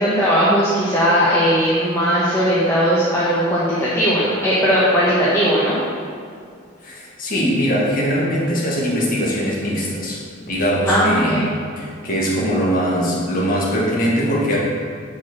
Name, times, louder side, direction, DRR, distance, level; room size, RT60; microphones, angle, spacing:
voice 1, 0.0-5.8 10.9-11.4, equal, 10° left, -9 dB, 1.2 m, -18 dB
voice 2, 6.8-14.6, equal, 45° left, -5 dB, 1.8 m, -21 dB
7.1 x 4.7 x 6.1 m, 2.3 s
head